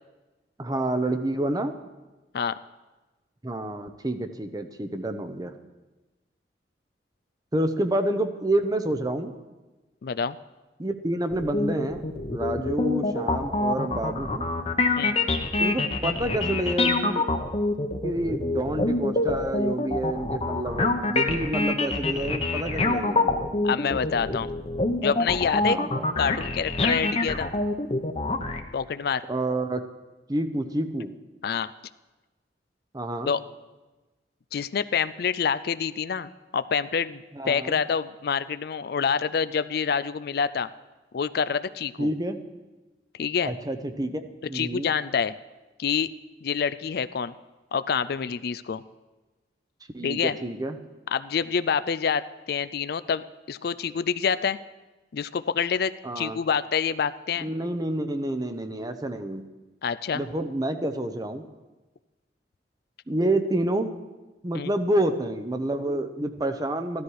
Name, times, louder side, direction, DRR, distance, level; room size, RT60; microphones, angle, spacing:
voice 1, 0.6-1.8 3.4-5.5 7.5-9.3 10.8-14.4 15.6-17.2 18.0-23.5 25.6-26.1 29.3-29.8 30.3-31.1 32.9-33.3 37.3-37.8 42.0-42.4 43.4-44.2 44.5-44.9 49.9-50.8 56.0-56.4 57.4-59.5 60.1-61.4 63.1-63.9 64.4-67.0, right 1 dB, 20° right, 8 dB, 0.8 m, -28 dB
voice 2, 10.0-10.4 15.0-15.1 23.6-24.5 25.0-25.8 26.2-27.5 28.7-29.2 31.4-31.7 33.3-33.4 34.5-40.7 41.1-42.1 43.1-43.5 44.5-45.3 45.8-46.1 46.4-47.3 47.7-48.8 50.0-50.4 51.1-54.6 55.1-57.5 59.8-60.2 64.5-64.7, left 6 dB, 60° left, 14 dB, 0.4 m, -27 dB
sound 1, 11.3-28.6, left 2 dB, 35° left, 0.9 m, -26 dB
14.5 x 13.0 x 4.8 m, 1.2 s
head